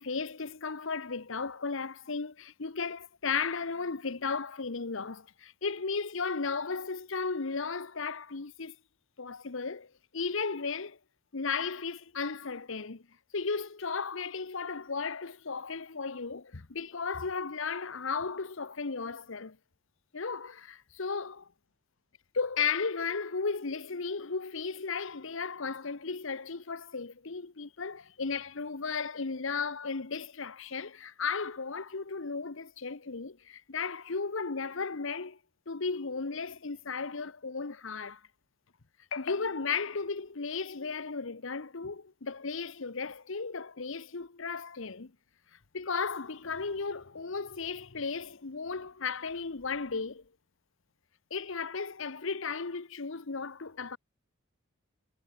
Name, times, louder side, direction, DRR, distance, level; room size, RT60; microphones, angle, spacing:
voice 1, 0.0-8.8 9.2-11.0 11.3-13.0 13.3-19.6 20.1-21.4 22.3-35.4 35.7-38.2 39.1-45.1 45.7-50.2 51.3-54.0, left 5 dB, 65° left, 1.0 m, -35 dB
head